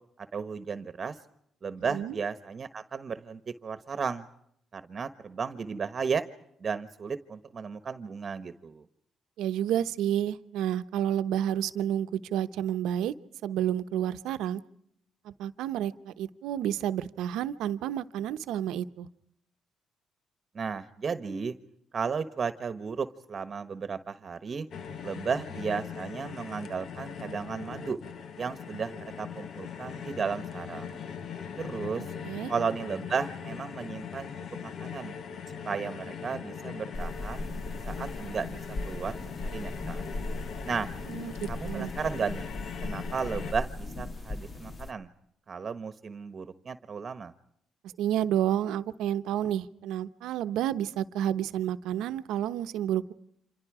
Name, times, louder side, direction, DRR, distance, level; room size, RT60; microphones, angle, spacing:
voice 1, 0.2-1.2 1.6-4.3 4.7-6.2 6.6-8.8 20.5-21.5 21.9-24.7 25.0-28.0 28.4-31.0 31.6-32.1 32.5-34.3 34.6-35.1 35.6-37.5 37.8-38.6 38.8-40.0 40.6-40.9 41.5-42.4 42.8-45.1 45.5-47.3, right 5 dB, 40° right, 11 dB, 1.3 m, -34 dB
voice 2, 1.8-2.2 9.4-13.1 13.4-14.6 15.2-19.1 32.2-32.5 41.1-41.9 48.0-53.1, right 11 dB, 90° right, 11 dB, 0.9 m, -30 dB
sound 1, 24.7-43.5, left 7 dB, 60° left, 1.2 m, -40 dB
sound 2, 36.9-44.9, left 2 dB, 40° left, 1.8 m, -38 dB
29.5 x 27.0 x 4.9 m, 0.72 s
cardioid pair, 90°, 0 cm